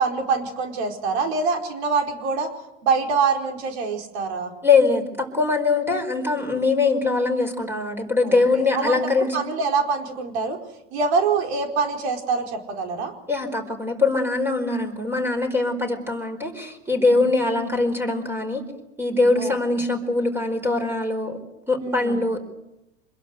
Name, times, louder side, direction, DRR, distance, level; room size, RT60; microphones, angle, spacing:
voice 1, 0.0-2.5 2.8-4.5 8.2-8.4 8.7-9.0 9.3-10.6 10.9-13.1 17.1-17.3 19.4-19.5 21.8-22.2, right 5 dB, 65° right, 4 dB, 4.8 m, -24 dB
voice 2, 4.6-9.4 13.3-18.6 19.0-21.4 21.7-22.4, left 3 dB, 5° right, 5 dB, 4.7 m, -22 dB
25.0 x 21.5 x 8.0 m, 0.92 s
hypercardioid pair, 90°, 35 cm